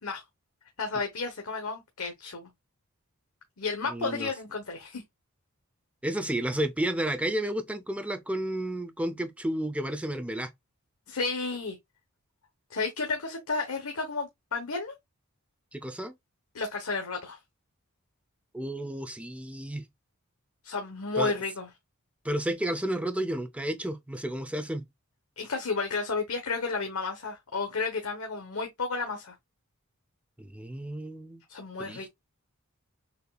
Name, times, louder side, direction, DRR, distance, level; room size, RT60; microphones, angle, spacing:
voice 1, 0.8-2.5 3.6-5.0 11.1-11.8 12.7-14.9 16.5-17.4 20.6-21.7 25.4-29.3 31.5-32.1, left 4 dB, 75° left, 1.1 m, -32 dB
voice 2, 3.9-4.3 6.0-10.5 15.7-16.1 18.5-19.8 21.2-21.3 22.2-24.9 30.4-31.4 31.8-32.1, right 1 dB, 5° right, 0.6 m, -32 dB
6.7 x 2.8 x 2.3 m
head